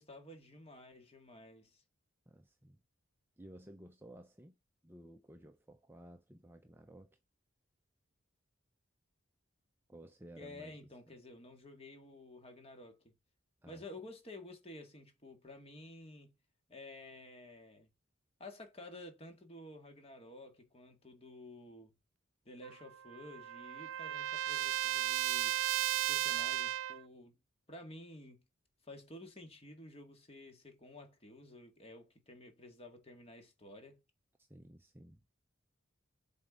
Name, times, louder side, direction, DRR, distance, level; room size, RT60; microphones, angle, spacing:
voice 1, 0.0-1.8 10.4-13.2 13.7-16.3 16.7-17.9 18.4-21.9 22.5-25.6 26.1-27.4 27.7-28.4 28.8-34.0, left 1 dB, 30° left, 1.8 m, -52 dB
voice 2, 2.3-2.8 3.4-4.6 4.8-7.2 9.9-10.8 11.1-11.2 13.6-13.8 34.4-35.2, right 1 dB, 10° right, 0.6 m, -55 dB
Trumpet, 22.6-27.0, right 14 dB, 65° right, 0.3 m, -35 dB
7.6 x 4.4 x 3.7 m
head